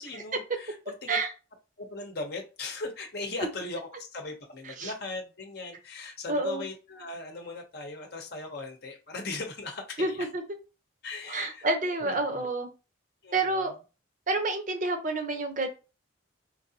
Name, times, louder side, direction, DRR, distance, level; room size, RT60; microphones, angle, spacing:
voice 1, 0.0-1.2 1.8-10.3 11.0-12.5 13.2-13.7, left 3 dB, 50° left, 2 dB, 0.8 m, -39 dB
voice 2, 6.3-6.6 10.0-10.4 11.3-12.7 13.3-13.7 14.3-15.7, right 2 dB, 40° right, 6 dB, 0.8 m, -28 dB
4.6 x 3.6 x 2.8 m, 0.32 s
head